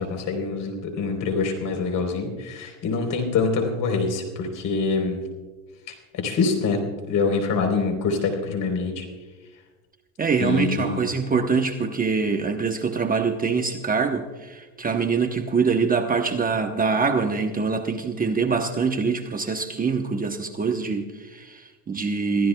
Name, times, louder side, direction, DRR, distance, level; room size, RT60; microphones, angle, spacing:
voice 1, 0.0-5.2 5.9-6.8 7.1-9.1 10.4-11.0, left 4 dB, 45° left, 5 dB, 3.9 m, -25 dB
voice 2, 10.2-22.5, right 5 dB, 20° right, 6 dB, 0.9 m, -24 dB
27.0 x 15.5 x 2.3 m, 1.3 s
supercardioid pair, 105°, 42 cm